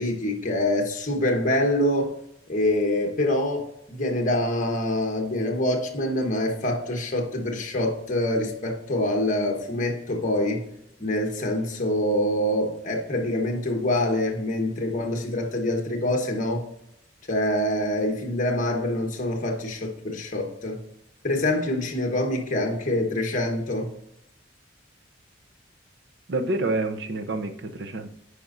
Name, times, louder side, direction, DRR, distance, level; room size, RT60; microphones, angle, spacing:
voice 1, 0.0-2.1 2.5-10.6 11.0-16.6 17.3-20.8 21.2-23.9, left 1 dB, 40° left, 2 dB, 1.1 m, -25 dB
voice 2, 26.3-28.1, right 2 dB, 60° right, 7 dB, 0.6 m, -28 dB
8.8 x 5.0 x 2.6 m, 0.78 s
head